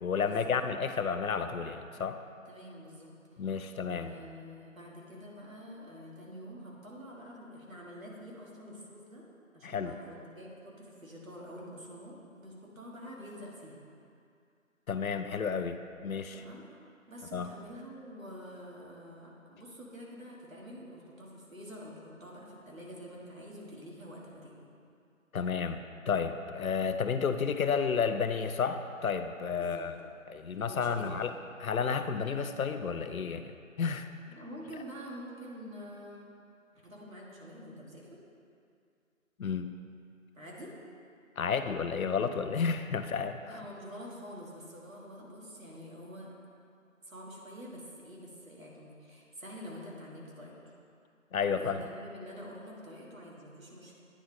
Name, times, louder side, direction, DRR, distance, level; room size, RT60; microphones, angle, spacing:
voice 1, 0.0-2.2 3.4-4.1 9.6-9.9 14.9-16.4 17.3-17.5 25.3-29.9 30.3-31.3 31.6-34.1 39.4-39.7 41.4-43.4 51.3-51.8, left 6 dB, 85° left, 9 dB, 0.5 m, -31 dB
voice 2, 2.5-3.5 3.9-9.3 9.5-13.8 16.3-16.8 17.1-24.7 29.6-29.9 30.6-31.2 34.3-36.3 36.7-38.2 40.3-40.7 43.4-46.3 47.0-50.5 51.5-54.0, equal, 70° right, -3 dB, 1.6 m, -47 dB
9.2 x 3.9 x 3.4 m, 2.4 s
figure-of-eight pair, 180°, 41 cm